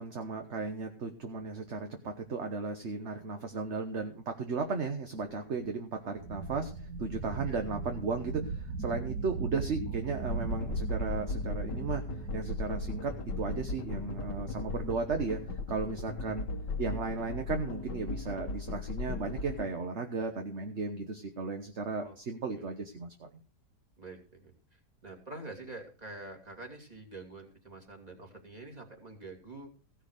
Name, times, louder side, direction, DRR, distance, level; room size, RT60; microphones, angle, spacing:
voice 1, 0.0-12.0 12.3-15.4 15.7-16.4 16.8-23.3, right 4 dB, 45° right, 5 dB, 1.4 m, -35 dB
sound 1, 5.3-5.4 5.5-5.6 6.1-15.5, right 4 dB, 65° right, 2.1 m, -39 dB
sound 2, 10.3-19.7, left 4 dB, 85° left, 1.7 m, -37 dB
voice 2, 24.0-24.5 25.0-29.7, right 2 dB, 25° right, 2 dB, 2.9 m, -46 dB
16.0 x 6.5 x 6.5 m, 0.38 s
omnidirectional pair, 1.8 m